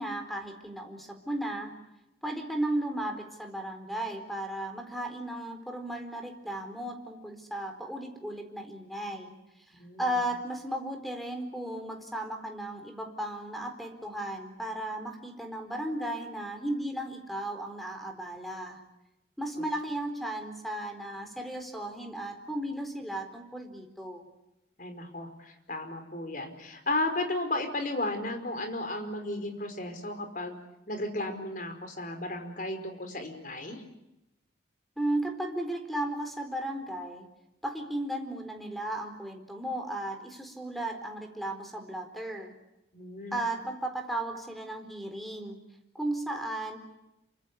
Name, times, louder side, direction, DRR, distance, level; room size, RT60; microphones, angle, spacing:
voice 1, 0.0-1.8 2.2-9.3 10.0-18.8 19.4-24.3 35.0-37.3 37.6-42.5 43.3-45.6 45.9-46.8, right 1 dB, ahead, 6 dB, 4.2 m, -35 dB
voice 2, 9.8-10.1 24.8-30.6 30.9-33.8 42.9-43.4, left 2 dB, 45° left, 7 dB, 5.0 m, -34 dB
28.0 x 25.0 x 8.5 m, 0.92 s
head